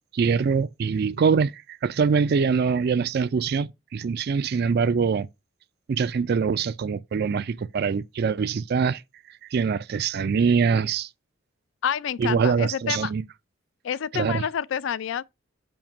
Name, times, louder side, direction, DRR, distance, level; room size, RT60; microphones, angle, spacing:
voice 1, 0.1-5.3 5.9-9.0 9.5-11.1 12.2-13.2 14.1-14.5, right 5 dB, 50° right, 0.3 m, -23 dB
voice 2, 11.8-13.1 13.8-15.2, left 8 dB, 60° left, 0.3 m, -28 dB
7.1 x 2.9 x 5.9 m
head